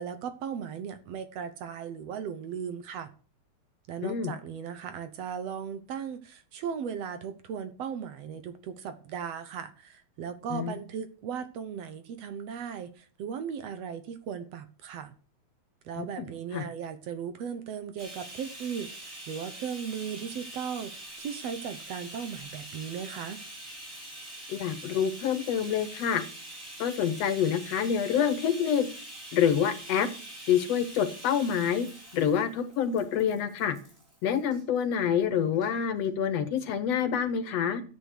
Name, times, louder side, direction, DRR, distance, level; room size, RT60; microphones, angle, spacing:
voice 1, 0.0-3.1 3.9-15.1 15.9-23.4, right 7 dB, 65° right, 1.9 m, -37 dB
voice 2, 4.0-4.3 10.5-10.7 16.0-16.1 16.5-16.7 24.5-26.2 26.8-28.9 29.3-30.1 30.5-31.9 32.1-33.8 34.2-37.8, left 8 dB, 65° left, 2.0 m, -27 dB
Bathtub (filling or washing), 18.0-34.6 35.5-35.7 36.0-36.1, right 1 dB, 25° right, 5.8 m, -44 dB
12.5 x 8.2 x 6.5 m
omnidirectional pair, 3.3 m